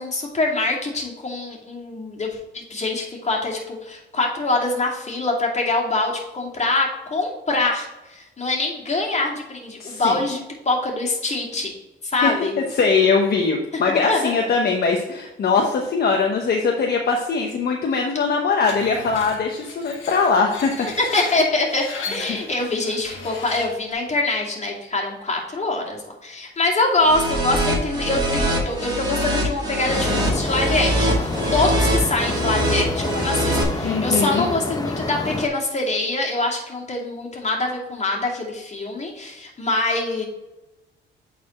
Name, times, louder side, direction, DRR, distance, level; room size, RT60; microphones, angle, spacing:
voice 1, 0.0-11.7 12.0-12.5 13.9-14.3 20.8-40.2, left 2 dB, 35° left, -2 dB, 2.4 m, -24 dB
voice 2, 9.8-10.1 12.2-12.3 12.8-20.7 22.3-22.4 33.8-34.5, left 4 dB, 55° left, 1 dB, 1.0 m, -21 dB
Screech, 18.6-23.9, left 4 dB, 90° left, 1.6 m, -36 dB
sound 1, 27.0-33.6, right 1 dB, 20° right, 2.2 m, -23 dB
sound 2, 29.9-35.5, left 3 dB, 20° left, 0.7 m, -28 dB
8.5 x 4.3 x 4.3 m, 1.0 s
cardioid pair, 90°, 20 cm